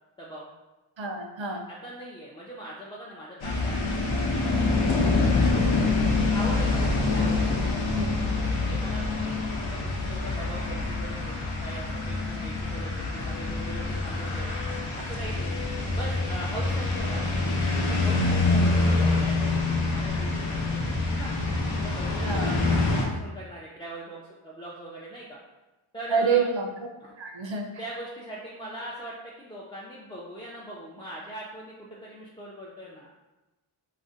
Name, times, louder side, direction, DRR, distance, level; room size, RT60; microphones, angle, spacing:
voice 1, 0.2-0.5 1.7-5.6 5.8-7.7 8.5-11.3 11.6-14.5 15.0-15.6 15.9-17.2 17.6-21.3 21.8-25.4 25.9-26.5 27.0-27.1 27.8-33.1, right 1 dB, 10° left, -5 dB, 0.3 m, -41 dB
voice 2, 1.0-1.6 7.9-8.2 18.5-18.7 22.2-22.6 26.1-26.7 27.2-27.7, right 5 dB, 65° right, 2 dB, 0.6 m, -28 dB
sound 1, 3.4-23.0, left 3 dB, 70° left, 0.6 m, -26 dB
2.5 x 2.1 x 3.7 m, 1.1 s
wide cardioid pair, 40°, 50 cm